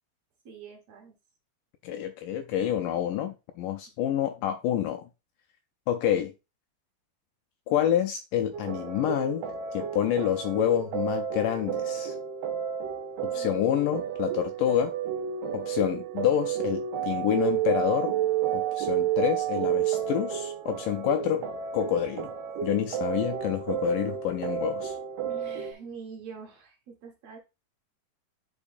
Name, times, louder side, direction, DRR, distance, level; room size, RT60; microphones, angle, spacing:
voice 1, 0.4-1.1 13.3-13.6 25.3-27.4, right 5 dB, 55° right, 2.1 m, -45 dB
voice 2, 1.8-5.1 5.9-6.3 7.7-9.4 9.7-12.2 13.2-14.9 15.5-18.2 18.5-21.5 21.7-22.3 22.6-25.0, left 10 dB, 85° left, 1.8 m, -28 dB
sound 1, 8.5-25.7, right 9 dB, 80° right, 3.0 m, -31 dB
9.9 x 4.7 x 2.6 m
omnidirectional pair, 4.3 m